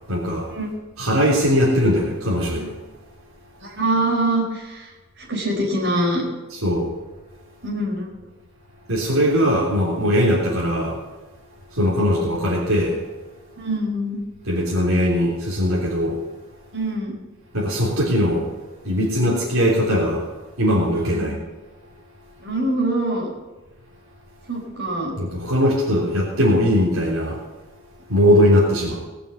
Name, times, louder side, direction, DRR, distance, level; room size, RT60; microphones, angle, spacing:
voice 1, 0.1-0.5 1.0-2.8 6.5-6.9 8.9-11.0 11.7-13.0 14.5-16.2 17.5-18.5 18.8-20.2 20.6-21.4 25.2-27.4 28.1-29.0, equal, 80° right, -5 dB, 3.4 m, -20 dB
voice 2, 3.6-4.9 5.2-6.2 7.6-8.1 13.6-14.2 16.7-17.1 21.0-21.3 22.4-23.3 24.5-25.1, right 1 dB, 60° right, -1 dB, 4.4 m, -24 dB
19.0 x 7.0 x 8.2 m, 1.2 s
head